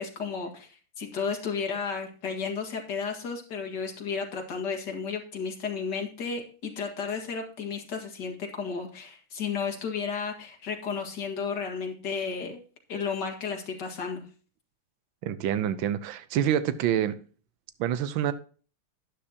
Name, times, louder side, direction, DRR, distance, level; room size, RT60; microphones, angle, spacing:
voice 1, 0.0-12.6 12.9-14.3, left 5 dB, 55° left, 2 dB, 2.4 m, -33 dB
voice 2, 15.2-17.1 17.8-18.3, right 10 dB, 70° right, 13 dB, 1.5 m, -27 dB
11.5 x 9.9 x 2.9 m, 0.39 s
omnidirectional pair, 2.3 m